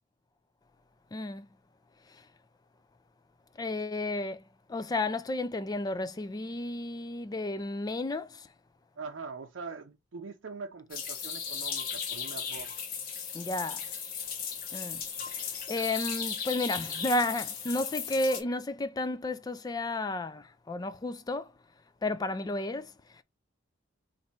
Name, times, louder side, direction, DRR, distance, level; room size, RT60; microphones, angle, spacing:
voice 1, 1.1-1.5 2.1-2.3 3.6-8.5 13.3-13.9 14.7-21.5 22.0-23.2, left 2 dB, 20° left, 0.3 m, -33 dB
voice 2, 9.0-12.7, right 4 dB, 75° right, 0.6 m, -42 dB
sound 1, 10.9-18.4, left 7 dB, 50° left, 0.9 m, -36 dB
4.2 x 2.6 x 2.8 m
head